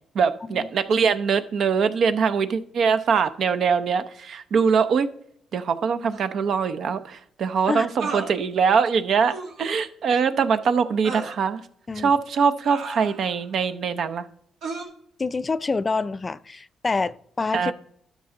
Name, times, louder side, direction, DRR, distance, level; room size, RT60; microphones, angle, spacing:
voice 1, 0.1-5.1 5.5-11.6 12.0-14.2 17.5-17.7, right 6 dB, 65° right, 0.7 m, -22 dB
sound 1, 6.1-6.2 8.0-8.3 9.3-9.6 11.0-11.4 12.6-13.4 14.6-14.8, right 4 dB, 80° right, 1.8 m, -33 dB
voice 2, 15.2-17.7, left 4 dB, 30° left, 0.4 m, -27 dB
12.5 x 6.0 x 3.8 m
cardioid pair, 90°, 0 cm